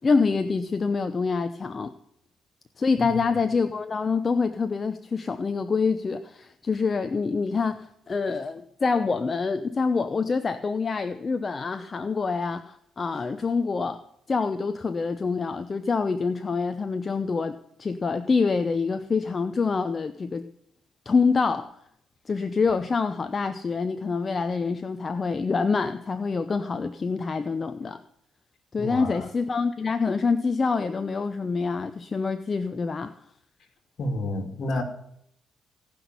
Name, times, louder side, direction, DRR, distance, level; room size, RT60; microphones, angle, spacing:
voice 1, 0.0-1.9 2.8-14.0 14.3-20.5 21.1-21.7 22.3-28.0 28.7-33.1, left 4 dB, 35° left, 10 dB, 0.8 m, -26 dB
voice 2, 28.8-29.2 34.0-34.8, left 1 dB, 60° left, 5 dB, 2.7 m, -30 dB
17.0 x 6.1 x 9.5 m, 0.73 s
cardioid pair, 80°, 0 cm